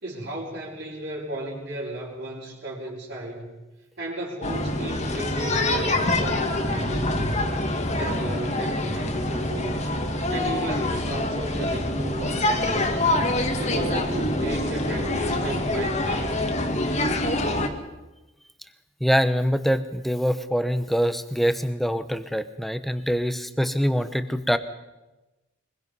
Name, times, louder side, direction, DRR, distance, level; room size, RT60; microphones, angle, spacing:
voice 1, 0.0-3.5 4.0-7.6 8.0-9.9 10.3-13.1 13.6-16.4, right 1 dB, 55° right, -8 dB, 4.9 m, -34 dB
sound 1, 4.4-17.7, left 1 dB, 35° left, 2.0 m, -25 dB
voice 2, 19.0-24.6, equal, ahead, 11 dB, 0.9 m, -24 dB
23.5 x 21.5 x 5.5 m, 1.1 s
head